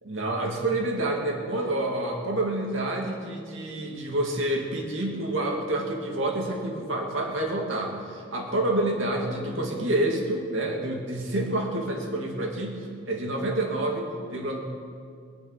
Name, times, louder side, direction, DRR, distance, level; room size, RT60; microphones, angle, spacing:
voice 1, 0.0-14.6, right 1 dB, 90° right, 0 dB, 2.3 m, -28 dB
20.0 x 7.1 x 9.4 m, 2.2 s
head